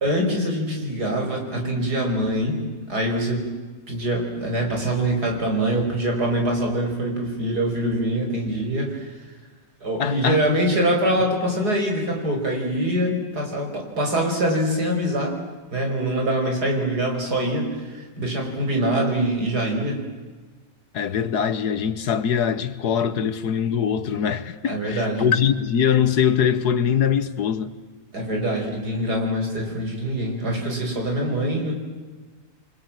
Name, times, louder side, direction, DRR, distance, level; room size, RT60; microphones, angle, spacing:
voice 1, 0.0-2.6 2.9-3.5 3.9-9.2 9.8-15.4 15.7-20.0 24.7-25.2 28.1-31.8, right 1 dB, 65° right, 5.9 m, -24 dB
voice 2, 10.0-10.4 20.9-27.7, left 8 dB, 65° left, 1.6 m, -22 dB
29.0 x 24.5 x 7.6 m
omnidirectional pair, 1.9 m